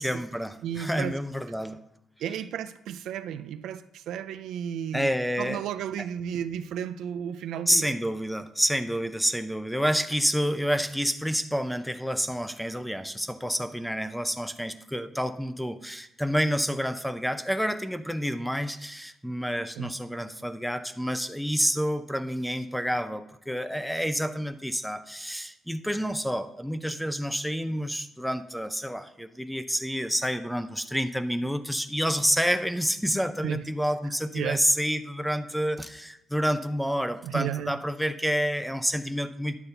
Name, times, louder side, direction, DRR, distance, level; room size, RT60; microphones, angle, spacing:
voice 1, 0.0-1.8 4.9-5.6 7.7-39.6, equal, ahead, 0.6 m, -28 dB
voice 2, 0.6-1.2 2.2-7.9 19.8-20.0 33.4-33.6 34.3-34.6 37.2-37.8, right 9 dB, 80° right, 0.4 m, -33 dB
10.5 x 4.1 x 6.7 m
cardioid pair, 90°, 0 cm